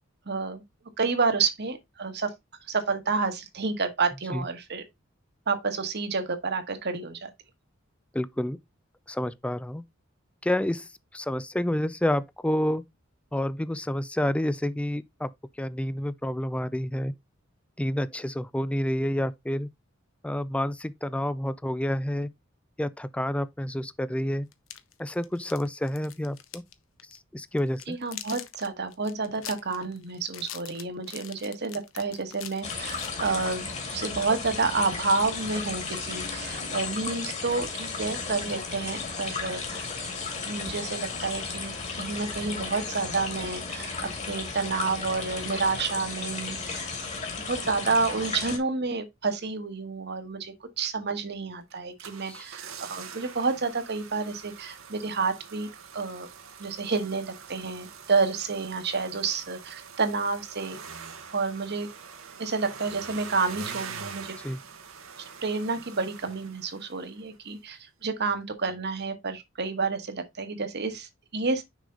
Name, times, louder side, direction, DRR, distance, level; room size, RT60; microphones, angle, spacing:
voice 1, 0.2-0.6 1.0-2.3 2.7-4.8 5.5-7.3 27.9-39.9 40.4-46.9 47.4-56.3 56.6-60.8 61.3-61.9 62.4-64.4 65.2-71.6, right 4 dB, 55° right, 1.4 m, -29 dB
voice 2, 8.1-8.6 9.1-9.8 10.4-12.8 13.3-15.3 15.6-17.1 17.8-19.7 20.2-22.3 22.8-24.5 25.0-26.6 27.3-28.0 52.3-52.5 64.4-64.6, left 1 dB, 5° left, 0.3 m, -29 dB
sound 1, 24.5-26.7 27.0-27.2 27.6-33.7, left 11 dB, 70° left, 0.9 m, -43 dB
sound 2, 32.6-48.6, left 4 dB, 35° left, 2.0 m, -34 dB
sound 3, 51.7-67.2 67.5-67.6, right 6 dB, 85° right, 1.2 m, -44 dB
6.4 x 5.0 x 3.7 m
head